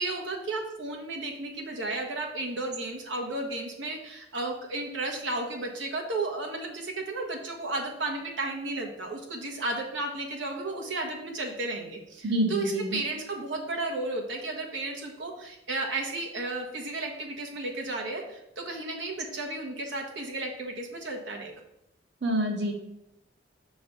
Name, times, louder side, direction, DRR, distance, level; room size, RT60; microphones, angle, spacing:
voice 1, 0.0-21.5, right 2 dB, 85° right, 1 dB, 1.2 m, -33 dB
voice 2, 12.2-12.9 22.2-22.7, right 1 dB, 65° right, 2 dB, 1.1 m, -27 dB
5.9 x 3.1 x 5.3 m, 0.84 s
head